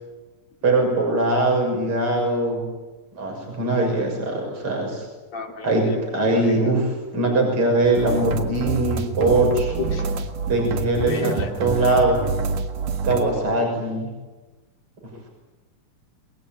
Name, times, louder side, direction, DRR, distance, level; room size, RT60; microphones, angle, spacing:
voice 1, 0.6-2.6 3.1-5.1 5.6-9.7 10.5-12.2 13.0-14.1, right 2 dB, 45° right, 1 dB, 7.3 m, -21 dB
voice 2, 5.3-6.0 6.3-6.5 9.8-10.1 11.0-11.5, left 6 dB, 55° left, 3 dB, 3.9 m, -32 dB
sound 1, 7.8-13.3, right 4 dB, 90° right, 3.3 m, -27 dB
27.5 x 22.5 x 9.0 m, 1.2 s
omnidirectional pair, 3.6 m